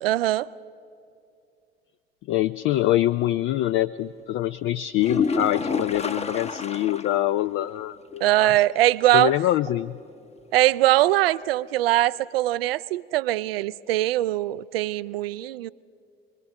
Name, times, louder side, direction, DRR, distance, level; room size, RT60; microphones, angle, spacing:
voice 1, 0.0-0.5 8.2-9.3 10.5-15.7, right 15 dB, 70° right, 18 dB, 0.5 m, -22 dB
voice 2, 2.3-8.5 9.1-10.0, left 14 dB, 40° left, 15 dB, 0.4 m, -24 dB
sound 1, 5.0-7.2 7.6-7.7 8.1-8.2 12.0-12.1, left 4 dB, 20° left, 1.0 m, -29 dB
27.5 x 21.5 x 5.2 m, 2.4 s
figure-of-eight pair, 60°, 30 cm